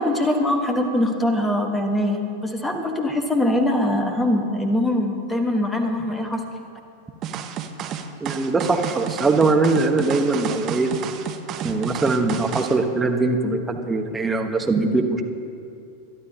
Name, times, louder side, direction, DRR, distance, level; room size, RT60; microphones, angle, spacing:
voice 1, 0.0-6.4, left 1 dB, 10° left, 4 dB, 1.3 m, -22 dB
sound 1, 7.2-12.8, right 8 dB, 35° right, 0.8 m, -31 dB
voice 2, 8.2-10.9 11.6-15.2, right 3 dB, 15° right, 4 dB, 1.1 m, -21 dB
22.5 x 12.0 x 2.9 m, 2.7 s
figure-of-eight pair, 90°, 0 cm